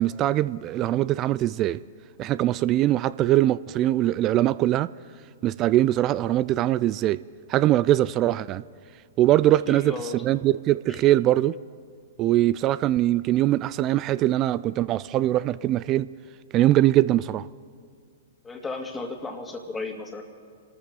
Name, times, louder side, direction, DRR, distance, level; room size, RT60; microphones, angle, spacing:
voice 1, 0.0-1.8 2.2-4.9 5.4-7.2 7.5-8.6 9.2-9.9 10.2-11.6 12.2-16.1 16.5-17.5, right 14 dB, 35° right, 0.3 m, -22 dB
voice 2, 9.7-10.2 10.9-11.0 18.4-20.2, left 3 dB, 10° left, 2.3 m, -34 dB
27.5 x 13.5 x 3.8 m
hypercardioid pair, 115°, 0 cm